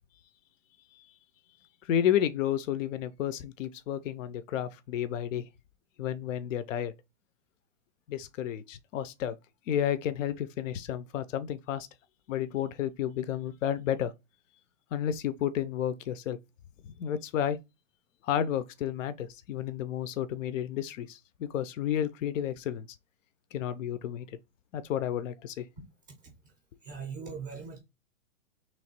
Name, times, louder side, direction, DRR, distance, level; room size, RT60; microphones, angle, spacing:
voice 1, 1.9-5.4 6.0-6.9 8.1-9.4 9.7-11.9 12.3-14.1 14.9-16.4 17.0-17.6 18.3-22.9 23.5-24.3 24.7-25.6, left 10 dB, 80° left, 0.6 m, -31 dB
voice 2, 26.8-27.8, right 5 dB, 15° right, 0.4 m, -40 dB
3.1 x 3.0 x 4.3 m
supercardioid pair, 175°, 38 cm